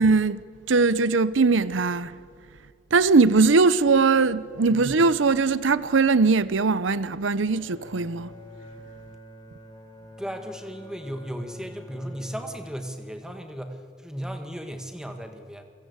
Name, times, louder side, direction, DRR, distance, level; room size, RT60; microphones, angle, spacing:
voice 1, 0.0-2.1 2.9-8.3, right 4 dB, 85° right, 0.8 m, -20 dB
Bowed string instrument, 7.4-12.9, left 1 dB, 25° left, 3.7 m, -46 dB
voice 2, 10.2-15.6, equal, 5° right, 1.7 m, -36 dB
28.5 x 23.0 x 8.2 m
head